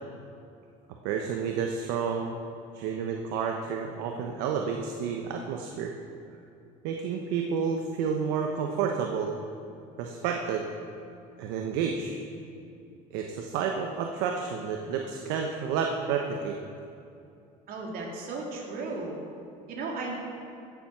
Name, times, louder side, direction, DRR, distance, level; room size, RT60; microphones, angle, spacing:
voice 1, 1.0-2.3 2.7-5.9 6.8-9.4 10.0-10.6 11.4-12.2 13.1-16.6, right 6 dB, 80° right, 2 dB, 1.1 m, -30 dB
voice 2, 17.7-19.2 19.7-20.2, right 3 dB, 60° right, -1 dB, 3.1 m, -35 dB
16.5 x 7.4 x 6.2 m, 2.6 s
supercardioid pair, 100°, 17 cm